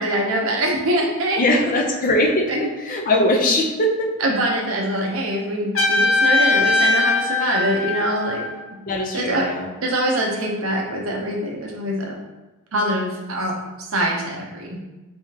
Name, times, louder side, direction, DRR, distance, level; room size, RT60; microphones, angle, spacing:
voice 1, 0.0-1.6 2.5-2.7 4.2-8.4 9.1-9.5 9.8-12.1 12.7-13.5 13.8-14.8, right 1 dB, 65° right, 0 dB, 0.7 m, -23 dB
voice 2, 1.4-2.5 2.8-4.1 8.9-9.7, left 1 dB, 40° left, 0 dB, 0.5 m, -20 dB
Trumpet, 5.7-8.6, left 3 dB, 65° left, 1.0 m, -20 dB
3.4 x 3.4 x 2.8 m, 1.1 s
head